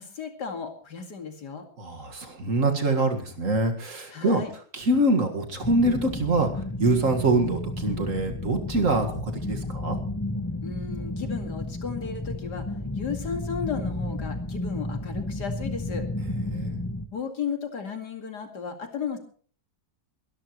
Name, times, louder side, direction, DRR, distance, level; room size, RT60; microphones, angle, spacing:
voice 1, 0.0-1.6 4.1-4.5 10.6-16.1 17.1-19.2, left 6 dB, 70° left, 5 dB, 2.8 m, -34 dB
voice 2, 1.8-4.4 4.7-6.5 6.8-10.0 16.5-16.8, right 2 dB, 50° right, 4 dB, 2.2 m, -24 dB
sound 1, 5.6-17.1, left 2 dB, 20° left, 0.5 m, -32 dB
23.0 x 12.5 x 3.1 m, 0.44 s
omnidirectional pair, 1.8 m